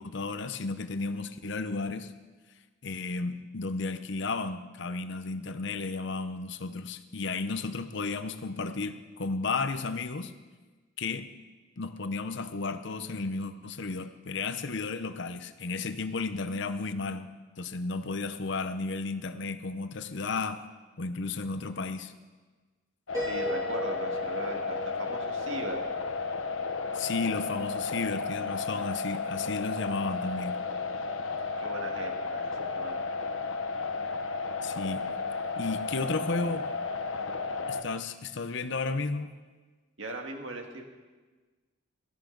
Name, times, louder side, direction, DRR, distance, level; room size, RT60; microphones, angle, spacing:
voice 1, 0.0-2.1 2.8-10.3 11.0-11.3 11.8-17.3 17.6-20.6 21.0-22.1 26.9-30.6 34.6-35.1 35.6-36.7 37.7-39.3, left 3 dB, 60° left, 10 dB, 0.8 m, -33 dB
sound 1, 23.1-37.8, left 4 dB, 90° left, 0.9 m, -33 dB
Piano, 23.1-26.9, right 1 dB, 20° right, 2.9 m, -38 dB
voice 2, 23.2-25.8 31.6-33.1 40.0-40.8, right 2 dB, 75° right, 3 dB, 1.9 m, -39 dB
18.0 x 13.5 x 3.9 m, 1.3 s
head